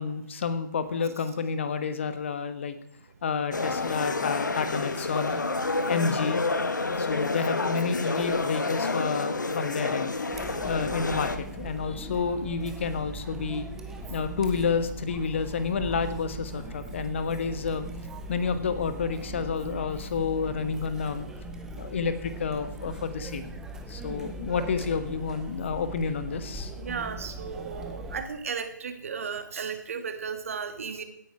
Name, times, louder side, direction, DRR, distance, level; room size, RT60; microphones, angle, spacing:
voice 1, 0.0-2.8 3.2-5.4 5.9-6.4 7.0-10.1 10.6-13.7 14.1-17.9 18.3-21.3 21.8-23.5 23.9-26.7, left 5 dB, 40° left, 11 dB, 1.2 m, -30 dB
sound 1, 3.5-11.4, left 3 dB, 70° left, 1.5 m, -29 dB
Chatter, 10.3-28.2, right 2 dB, 5° right, 0.8 m, -40 dB
voice 2, 26.8-31.0, right 6 dB, 45° right, 8 dB, 1.6 m, -35 dB
16.5 x 9.4 x 4.8 m, 0.76 s
figure-of-eight pair, 145°, 10 cm